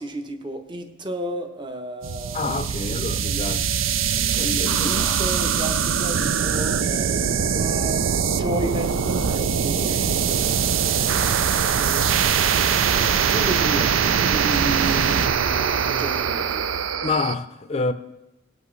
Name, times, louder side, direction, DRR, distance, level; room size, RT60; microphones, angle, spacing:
voice 1, 0.0-2.7 4.1-16.7, right 1 dB, 25° right, 0.8 m, -33 dB
sound 1, 2.0-17.3, right 7 dB, 90° right, 0.5 m, -22 dB
voice 2, 2.3-3.6 4.3-5.7 6.2-6.3 17.0-17.9, left 3 dB, 30° left, 0.5 m, -28 dB
sound 2, 9.9-15.2, right 4 dB, 45° right, 1.0 m, -47 dB
18.0 x 8.2 x 3.2 m
head